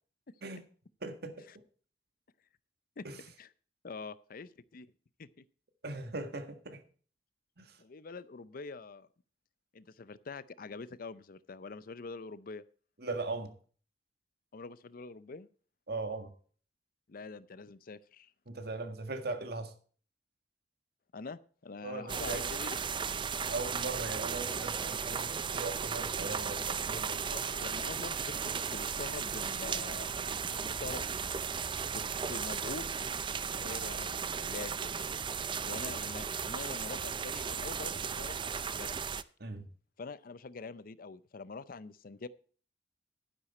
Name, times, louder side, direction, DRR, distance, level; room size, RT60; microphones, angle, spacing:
voice 1, 1.0-1.5 3.0-3.2 5.8-6.8 7.6-7.8 13.0-13.5 15.9-16.3 18.5-19.7 21.8-22.6 23.5-27.2 39.4-39.7, right 3 dB, 65° right, 1.7 m, -39 dB
voice 2, 3.8-4.9 5.2-5.4 7.8-9.1 9.7-12.6 14.5-15.5 17.1-18.3 21.1-22.8 27.2-28.4 28.7-30.1 30.5-31.1 32.3-34.9 35.7-38.4 38.8-39.0 40.0-42.3, left 4 dB, 55° left, 0.6 m, -45 dB
sound 1, 22.1-39.2, right 6 dB, 30° right, 0.5 m, -35 dB
11.5 x 9.9 x 4.3 m
head